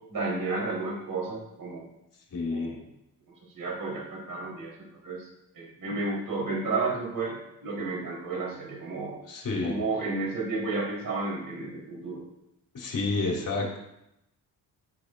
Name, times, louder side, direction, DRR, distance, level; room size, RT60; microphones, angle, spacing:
voice 1, 0.1-1.8 2.5-2.7 3.5-5.3 5.5-7.3 7.6-9.2 9.6-12.2, right 3 dB, 60° right, -3 dB, 4.3 m, -32 dB
voice 2, 2.3-2.8 9.3-9.8 12.7-13.8, left 3 dB, 55° left, -3 dB, 3.6 m, -29 dB
13.0 x 8.7 x 2.7 m, 0.84 s
cardioid pair, 80°, 38 cm